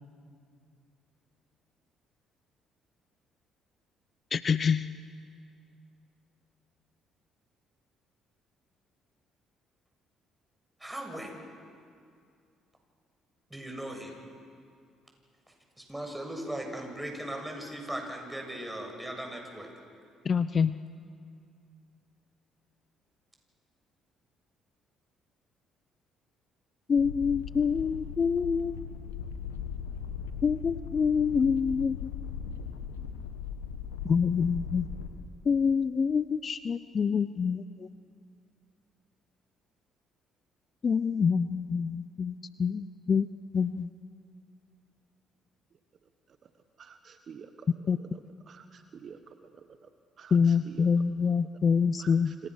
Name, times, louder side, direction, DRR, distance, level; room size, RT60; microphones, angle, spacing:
voice 1, 4.3-4.9 20.2-20.8 26.9-28.8 30.4-32.1 34.0-34.9 35.4-37.9 40.8-43.3 43.5-43.9 47.9-48.0 50.3-52.5, left 6 dB, 45° left, 14 dB, 0.7 m, -26 dB
voice 2, 10.8-11.4 13.5-14.2 15.9-19.7, right 1 dB, 10° right, 2 dB, 7.6 m, -38 dB
sound 1, 27.0-35.1, left 7 dB, 85° left, 1.4 m, -38 dB
voice 3, 46.8-47.7 48.1-49.9 50.2-50.9 52.0-52.5, right 6 dB, 50° right, 8 dB, 1.4 m, -48 dB
30.0 x 26.0 x 6.4 m, 2.3 s
hypercardioid pair, 50°, 0 cm